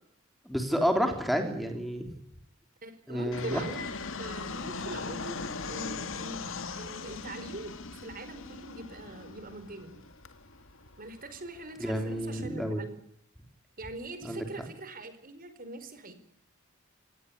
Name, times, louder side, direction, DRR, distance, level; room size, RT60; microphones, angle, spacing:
voice 1, 0.5-2.1 3.1-3.6 11.8-12.8 14.2-14.5, equal, ahead, 4 dB, 3.5 m, -30 dB
voice 2, 2.8-6.4 6.8-10.0 11.0-12.9 13.8-16.1, right 2 dB, 45° right, 11 dB, 4.6 m, -42 dB
Fixed-wing aircraft airplane, 3.3-12.3, left 4 dB, 65° left, 2.2 m, -40 dB
26.5 x 18.5 x 9.6 m, 0.76 s
head